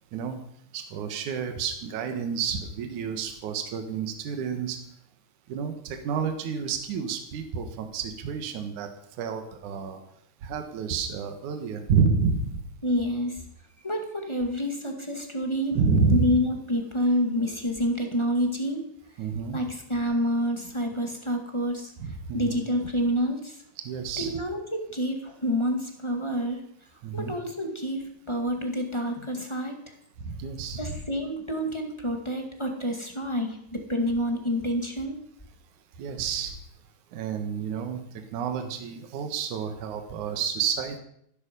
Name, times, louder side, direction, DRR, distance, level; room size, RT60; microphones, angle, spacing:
voice 1, 0.7-4.8 5.5-8.9 9.2-10.0 10.4-12.6 15.7-16.3 19.2-19.6 22.0-22.6 23.8-24.3 27.0-27.3 30.2-31.0 36.0-36.6 37.1-38.0 38.3-41.0, right 5 dB, 60° right, 6 dB, 2.8 m, -29 dB
voice 2, 12.8-13.4 13.8-15.8 16.1-18.9 19.5-21.9 22.3-23.6 24.2-26.6 27.1-29.7 30.7-35.2, equal, 15° left, 3 dB, 1.2 m, -28 dB
15.0 x 13.5 x 5.4 m, 0.69 s
omnidirectional pair, 4.1 m